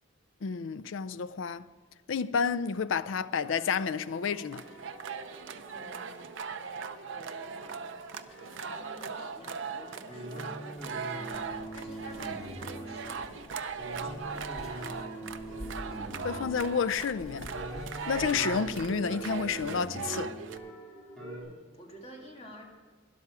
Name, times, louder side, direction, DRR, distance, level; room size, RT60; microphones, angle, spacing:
voice 1, 0.4-1.7 2.1-4.6 16.2-17.5 18.1-20.3, left 6 dB, 65° left, 0.4 m, -30 dB
sound 1, 3.0-21.4, right 1 dB, 5° left, 2.7 m, -44 dB
sound 2, 4.5-20.6, right 5 dB, 60° right, 0.6 m, -40 dB
voice 2, 5.7-6.4 8.3-13.5 13.9-15.2 20.8-22.6, equal, 30° left, 1.9 m, -50 dB
sound 3, 11.0-20.0, equal, 85° left, 1.9 m, -50 dB
12.5 x 11.0 x 4.9 m
head